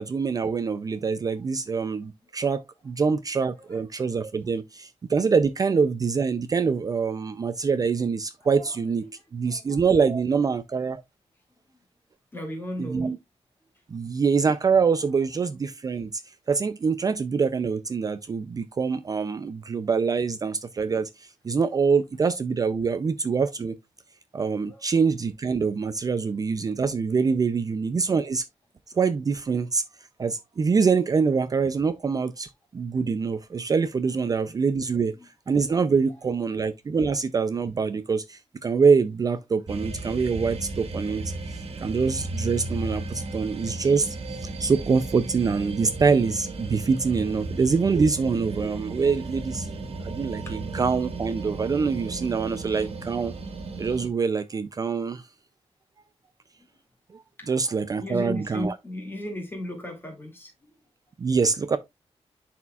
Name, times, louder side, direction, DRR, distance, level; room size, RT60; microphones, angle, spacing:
voice 1, 0.0-9.0 9.3-11.0 12.8-13.2 13.9-23.7 24.3-28.5 28.9-29.8 30.2-35.1 35.5-44.2 44.4-49.7 50.0-53.3 53.8-55.3 57.1-58.7 61.2-61.8, right 5 dB, 35° right, 0.4 m, -25 dB
voice 2, 3.5-4.1 8.5-8.8 9.0-9.9 11.7-11.8 12.3-13.1 13.7-13.8 15.1-15.2 24.7-24.8 35.1-35.3 36.1-36.2 50.5-50.6 52.7-52.9 56.6-56.7 57.4-57.5 58.0-60.7, left 1 dB, 20° left, 2.2 m, -37 dB
sound 1, 39.7-54.1, right 3 dB, 65° right, 1.6 m, -35 dB
11.0 x 4.3 x 2.3 m
wide cardioid pair, 175°, 11 cm